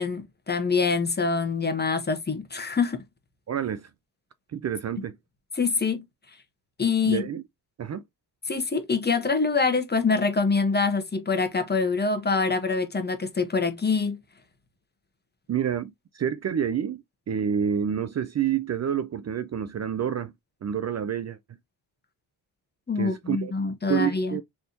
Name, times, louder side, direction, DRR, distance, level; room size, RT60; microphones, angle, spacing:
voice 1, 0.0-3.0 5.6-6.0 6.8-7.2 8.5-14.2 22.9-24.4, left 4 dB, 25° left, 1.1 m, -25 dB
voice 2, 3.5-3.9 4.5-5.2 7.0-7.4 7.8-8.0 15.5-20.3 20.6-21.4 23.0-23.5 23.9-24.4, right 8 dB, 40° right, 0.5 m, -28 dB
3.9 x 3.5 x 2.8 m
cardioid pair, 90°, 41 cm